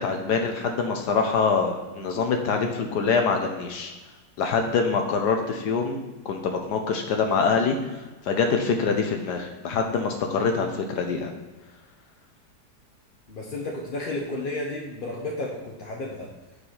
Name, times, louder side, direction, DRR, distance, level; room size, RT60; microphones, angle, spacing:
voice 1, 0.0-3.9 4.4-6.0 6.2-7.8 8.2-11.3, left 5 dB, 75° left, 3 dB, 1.4 m, -24 dB
voice 2, 13.3-16.3, left 2 dB, 40° left, -2 dB, 0.8 m, -32 dB
6.6 x 4.8 x 5.6 m, 1.2 s
omnidirectional pair, 1.8 m